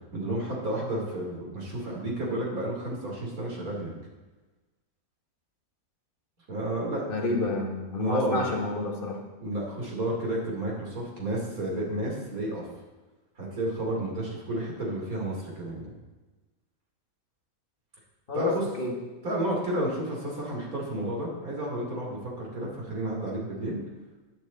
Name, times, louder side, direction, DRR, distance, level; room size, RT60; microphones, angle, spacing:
voice 1, 0.1-3.9 6.5-7.4 8.0-8.5 9.4-12.7 13.4-15.9 18.3-18.7 19.2-23.8, right 1 dB, 85° right, -3 dB, 3.5 m, -31 dB
voice 2, 7.1-9.2 18.3-18.5 18.8-18.9, left 2 dB, 40° left, 0 dB, 2.0 m, -29 dB
20.0 x 6.8 x 4.2 m, 1.2 s
omnidirectional pair, 1.5 m